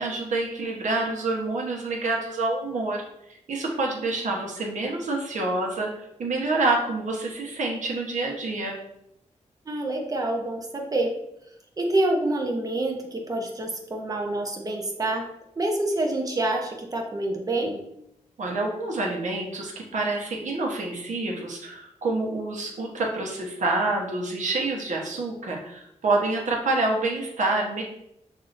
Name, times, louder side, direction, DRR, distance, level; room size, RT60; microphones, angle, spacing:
voice 1, 0.0-3.0 3.3-5.9 6.2-8.8 18.4-27.8, right 2 dB, 75° right, 0 dB, 1.0 m, -27 dB
voice 2, 9.7-11.1 11.8-15.2 15.6-17.8, right 2 dB, 30° right, 1 dB, 0.8 m, -27 dB
6.6 x 2.7 x 2.6 m, 0.81 s
wide cardioid pair, 110°, 13 cm